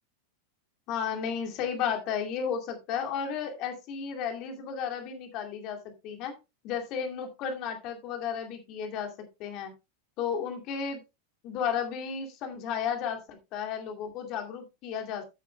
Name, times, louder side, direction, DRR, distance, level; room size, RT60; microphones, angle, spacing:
voice 1, 0.9-6.4 6.6-9.1 9.4-9.7 10.2-11.0 11.4-15.2, left 7 dB, 40° left, 4 dB, 2.4 m, -33 dB
15.0 x 8.2 x 2.2 m, 0.24 s
figure-of-eight pair, 90°, 0 cm